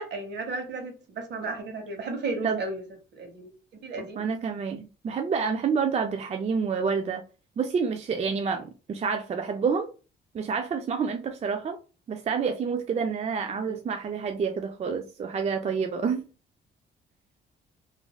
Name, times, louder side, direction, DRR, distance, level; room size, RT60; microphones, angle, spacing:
voice 1, 0.0-2.8 3.1-3.5 3.8-4.2 13.5-13.8, right 3 dB, 60° right, 1.0 m, -34 dB
voice 2, 4.0-7.2 7.6-9.9 10.3-11.8 12.1-16.2, right 5 dB, 35° right, 0.4 m, -28 dB
3.0 x 2.6 x 2.2 m
cardioid pair, 90°, 20 cm